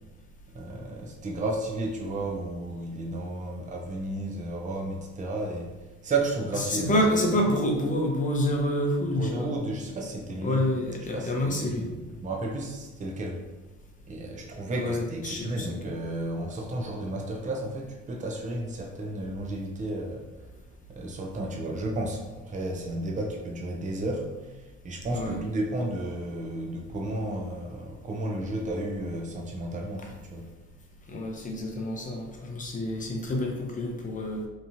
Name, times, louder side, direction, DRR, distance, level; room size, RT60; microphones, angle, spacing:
voice 1, 0.5-5.7 6.0-7.1 7.3-7.4 9.0-10.6 11.0-13.4 14.1-20.3 20.9-30.5, right 2 dB, 25° right, 0 dB, 0.5 m, -33 dB
voice 2, 6.7-9.5 10.4-11.9 14.8-15.9 25.1-25.4 31.1-34.5, left 1 dB, 25° left, 0 dB, 0.6 m, -28 dB
2.9 x 2.3 x 2.7 m, 1.1 s
cardioid pair, 90°, 30 cm